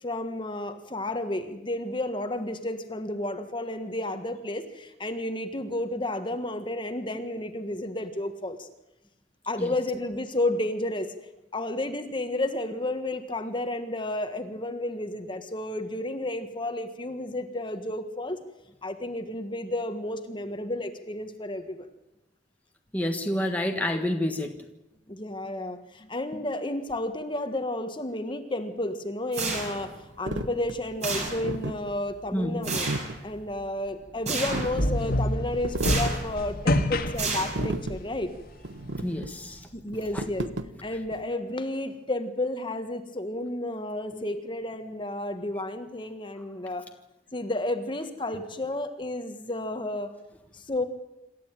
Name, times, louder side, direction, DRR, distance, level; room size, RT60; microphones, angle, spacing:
voice 1, 0.0-8.7 9.4-11.1 11.5-18.4 18.8-21.9 25.1-32.9 33.2-38.3 39.7-40.5 40.8-46.8 47.3-50.1 50.5-50.8, left 1 dB, 25° left, 8 dB, 1.6 m, -32 dB
voice 2, 22.9-24.5 32.3-32.6 39.0-39.6, left 1 dB, 10° left, 3 dB, 1.5 m, -28 dB
sound 1, 29.3-30.0 31.0-31.7 32.6-33.1 34.3-34.8 35.8-36.3 37.2-37.8, right 3 dB, 40° right, 5.8 m, -31 dB
sound 2, 30.3-41.2, right 2 dB, 85° right, 1.2 m, -35 dB
sound 3, 34.5-38.0, left 1 dB, 55° left, 1.9 m, -27 dB
27.0 x 13.5 x 9.1 m, 0.93 s
head